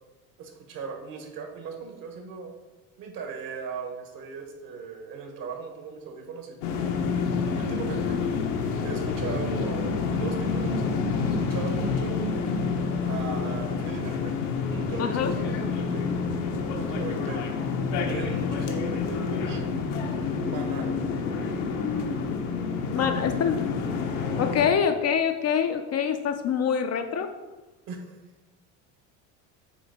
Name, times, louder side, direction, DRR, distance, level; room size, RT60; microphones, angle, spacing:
voice 1, 0.4-2.5 3.0-6.6 7.5-8.2 8.8-10.9 11.2-12.2 13.1-14.4 14.7-16.1 16.7-17.4 18.1-19.7 20.4-20.9 22.9-23.3 27.9-28.2, right 5 dB, 55° right, 3 dB, 1.5 m, -38 dB
sound 1, 6.6-24.7, left 5 dB, 80° left, 1.1 m, -28 dB
voice 2, 15.0-15.3 22.9-23.6 24.4-27.3, left 7 dB, 40° left, 7 dB, 0.5 m, -25 dB
8.4 x 3.2 x 4.2 m, 1.2 s
supercardioid pair, 100°, 42 cm